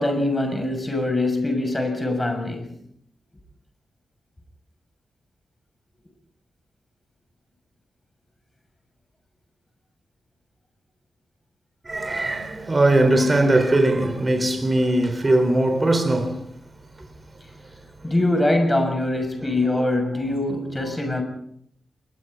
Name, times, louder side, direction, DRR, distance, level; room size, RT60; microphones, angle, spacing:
voice 1, 0.0-2.7 18.0-21.2, left 1 dB, 15° left, 6.6 m, -23 dB
voice 2, 11.8-16.5 17.0-17.1 17.6-18.1 19.3-19.8 20.8-20.9, right 1 dB, 25° right, 4.2 m, -21 dB
29.5 x 22.0 x 4.0 m
wide cardioid pair, 110°, 0 cm